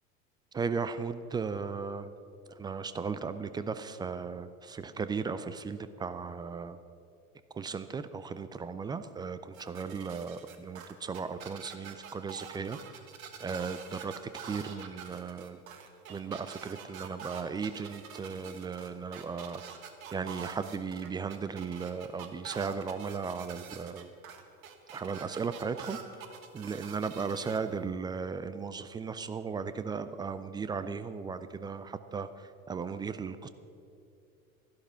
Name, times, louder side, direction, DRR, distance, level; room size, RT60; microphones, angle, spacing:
voice 1, 0.5-2.1 2.6-6.8 7.5-12.8 13.4-14.1 14.4-15.6 16.1-19.6 20.1-24.1 24.9-26.0 26.5-32.3 32.7-33.5, right 5 dB, 10° right, 12 dB, 0.3 m, -36 dB
sound 1, 9.5-27.6, right 7 dB, 70° right, 1.3 m, -46 dB
13.0 x 11.5 x 5.6 m, 2.5 s
figure-of-eight pair, 75°, 42 cm